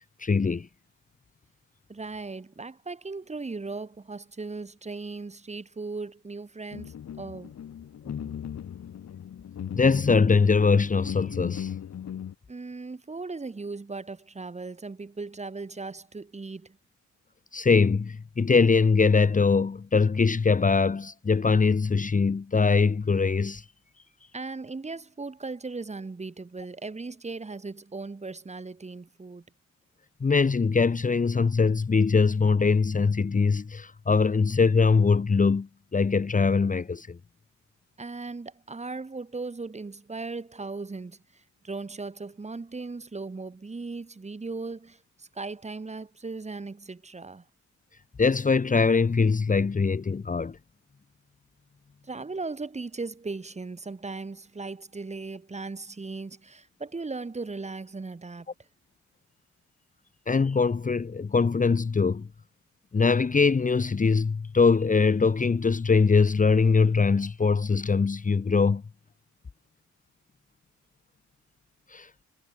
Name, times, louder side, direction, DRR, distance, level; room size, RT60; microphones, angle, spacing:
voice 1, 0.2-0.7 8.0-8.3 9.7-11.7 17.5-23.6 30.2-37.2 48.2-50.6 60.3-62.3 62.9-68.8 71.9-72.1, left 4 dB, 25° left, 1.4 m, -22 dB
voice 2, 1.9-7.5 12.5-16.8 24.3-29.4 38.0-47.4 52.0-58.5, right 3 dB, 20° right, 2.8 m, -37 dB
sound 1, 6.7-12.3, left 9 dB, 60° left, 6.2 m, -37 dB
cardioid pair, 90°, 30 cm